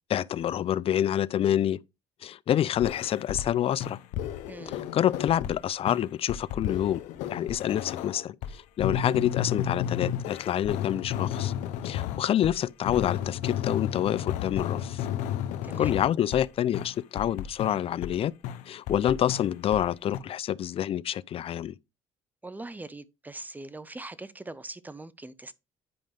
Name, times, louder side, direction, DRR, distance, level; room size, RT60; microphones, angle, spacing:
voice 1, 0.1-1.8 2.2-4.0 4.7-7.0 7.3-11.5 11.8-15.1 15.8-18.3 18.7-21.8, left 11 dB, 50° left, 0.4 m, -27 dB
sound 1, 2.8-3.5 3.8-5.6 5.9-12.6 12.9-16.5 16.7-18.2 18.4-19.9 20.1-20.2, left 10 dB, 85° left, 0.8 m, -33 dB
voice 2, 4.5-4.8 15.6-16.0 22.4-25.5, right 2 dB, 15° right, 0.7 m, -41 dB
9.8 x 5.2 x 3.4 m
supercardioid pair, 80°, 12 cm